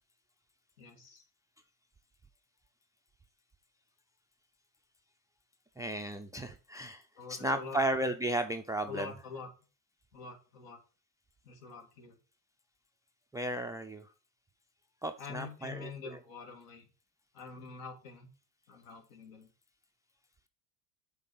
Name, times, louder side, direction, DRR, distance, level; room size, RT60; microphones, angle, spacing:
voice 1, 0.8-1.2 7.2-7.8 8.9-9.5 10.1-10.8 11.4-12.2 15.2-16.9 17.3-18.3 18.7-19.5, left 5 dB, 70° left, 3 dB, 2.3 m, -46 dB
voice 2, 5.8-7.0 7.3-9.1 13.3-14.1 15.0-16.2, right 1 dB, 10° right, 8 dB, 0.4 m, -34 dB
7.5 x 3.9 x 5.4 m, 0.35 s
hypercardioid pair, 80°, 48 cm